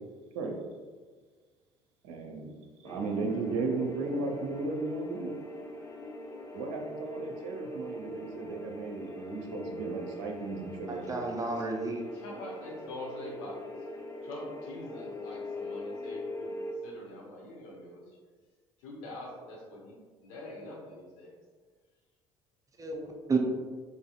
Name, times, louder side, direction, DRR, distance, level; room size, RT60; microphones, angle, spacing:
voice 1, 2.0-2.5 2.8-5.3 6.5-11.2, right 3 dB, 60° right, 2 dB, 0.6 m, -35 dB
sound 1, 2.8-16.7, left 1 dB, 20° left, 0.6 m, -42 dB
voice 2, 10.9-12.0 22.8-23.5, right 3 dB, 20° right, 2 dB, 0.6 m, -31 dB
voice 3, 12.1-13.8 14.2-18.2 18.8-21.3, left 1 dB, 65° left, -3 dB, 1.0 m, -44 dB
4.0 x 3.7 x 2.4 m, 1.5 s
figure-of-eight pair, 55°, 16 cm